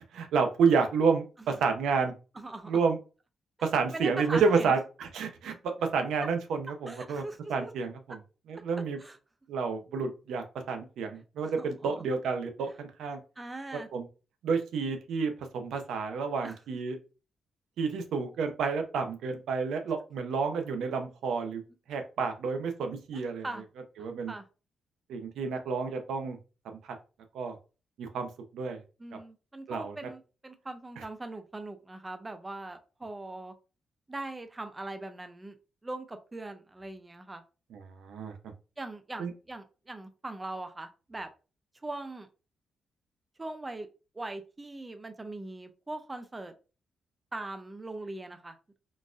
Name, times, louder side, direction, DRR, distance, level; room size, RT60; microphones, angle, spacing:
voice 1, 0.1-2.1 2.7-3.0 3.6-7.2 7.5-8.2 8.5-9.0 9.5-13.2 13.9-14.1 14.4-17.0 17.8-21.6 21.9-23.4 24.0-24.3 25.1-26.4 26.8-26.9 27.3-27.5 28.0-28.8 29.7-29.9 37.7-38.3 39.2-39.3, right 5 dB, 90° right, 6 dB, 0.6 m, -30 dB
voice 2, 2.3-2.7 3.9-4.8 6.9-7.7 9.0-9.2 11.1-12.1 12.7-12.8 13.4-13.9 16.4-16.6 23.1-23.6 24.0-24.5 29.0-33.5 34.1-35.6 35.8-37.4 38.8-41.3 41.8-42.3 43.4-43.9 44.1-46.5 47.3-48.6, right 2 dB, 15° right, 8 dB, 0.4 m, -41 dB
3.8 x 2.4 x 2.4 m, 0.33 s
wide cardioid pair, 150°, 0 cm